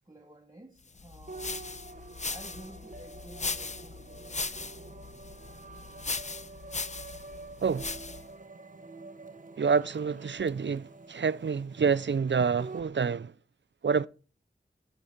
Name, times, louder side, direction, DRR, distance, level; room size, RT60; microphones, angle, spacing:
voice 1, 0.1-1.6 2.3-4.6, right 1 dB, 20° right, 1.2 m, -52 dB
sound 1, 1.0-8.3, left 3 dB, 35° left, 0.5 m, -38 dB
sound 2, 1.3-12.9, right 3 dB, 40° right, 0.8 m, -47 dB
voice 2, 9.6-13.3 13.8-14.1, right 6 dB, 65° right, 0.4 m, -27 dB
12.5 x 5.3 x 4.3 m
wide cardioid pair, 50°, 20 cm